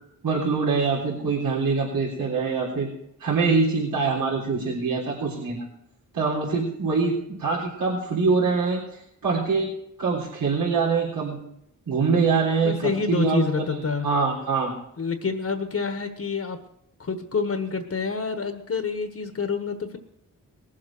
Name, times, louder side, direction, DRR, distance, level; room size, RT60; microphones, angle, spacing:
voice 1, 0.2-2.9 3.2-5.6 6.1-9.7 10.0-11.4 11.9-14.7, right 4 dB, 80° right, -7 dB, 3.8 m, -24 dB
voice 2, 12.6-14.1 15.0-16.6 17.0-20.0, left 5 dB, 45° left, 7 dB, 1.3 m, -27 dB
19.5 x 7.5 x 6.1 m, 0.76 s
wide cardioid pair, 110°, 33 cm